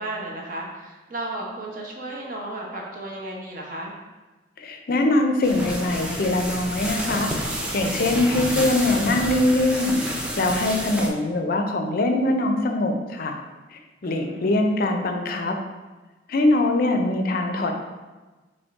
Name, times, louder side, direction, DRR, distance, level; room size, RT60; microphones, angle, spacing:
voice 1, 0.0-3.9 10.6-10.9 14.0-14.5, right 1 dB, 45° right, -2 dB, 0.8 m, -34 dB
voice 2, 4.6-7.3 7.7-10.0 10.4-13.4 13.7-15.5 16.3-17.7, left 2 dB, 50° left, 4 dB, 0.5 m, -22 dB
sound 1, 5.4-11.1, equal, 5° right, 0.4 m, -29 dB
3.6 x 3.2 x 4.0 m, 1.2 s
head